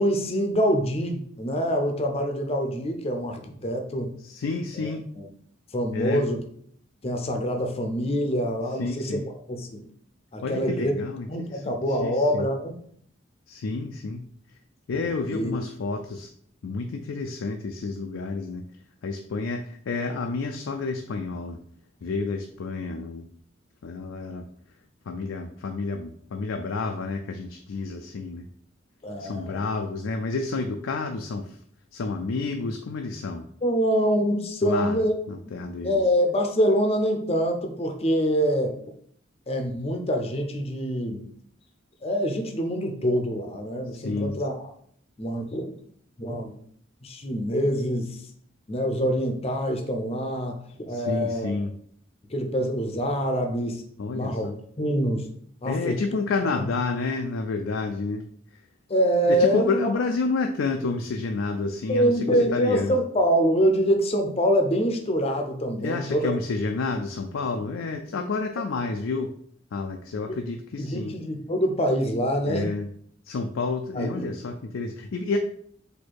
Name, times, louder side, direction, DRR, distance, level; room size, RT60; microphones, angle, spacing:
voice 1, 0.0-4.1 4.7-5.3 5.7-6.4 7.0-9.2 9.5-9.8 10.3-10.9 11.3-12.8 14.9-15.0 15.3-15.5 29.0-29.6 33.6-35.1 35.8-38.8 39.5-41.2 42.0-44.7 45.2-45.7 46.2-46.5 47.0-48.2 48.7-51.6 52.3-53.8 54.1-54.5 54.8-55.3 55.6-56.0 58.9-59.9 61.9-66.3 70.8-72.7 73.9-74.3, equal, 30° left, 4 dB, 0.6 m, -25 dB
voice 2, 4.2-5.0 5.9-6.2 8.8-9.3 10.4-12.5 13.5-14.3 14.9-16.3 16.6-18.6 19.0-21.6 22.0-23.3 23.8-24.5 25.1-28.5 29.2-31.6 31.9-33.4 34.6-35.0 35.3-36.0 43.9-44.3 50.9-51.7 54.0-54.6 55.7-58.2 59.3-63.0 65.8-69.3 69.7-71.2 72.5-72.9 73.3-75.4, left 3 dB, 80° left, 4 dB, 0.4 m, -30 dB
4.3 x 2.7 x 4.6 m, 0.64 s
head